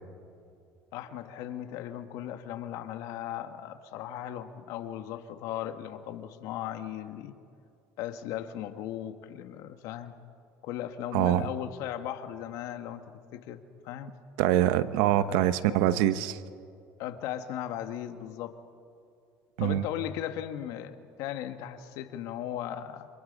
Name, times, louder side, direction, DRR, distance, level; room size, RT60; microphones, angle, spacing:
voice 1, 0.9-7.3 8.0-10.1 10.6-13.0 13.3-14.1 15.0-15.5 17.0-18.5 19.6-23.1, left 11 dB, 70° left, 8 dB, 1.7 m, -37 dB
voice 2, 11.1-11.4 14.4-16.4 19.6-19.8, right 12 dB, 80° right, 13 dB, 1.0 m, -24 dB
28.5 x 26.5 x 5.5 m, 2.5 s
supercardioid pair, 110°, 6 cm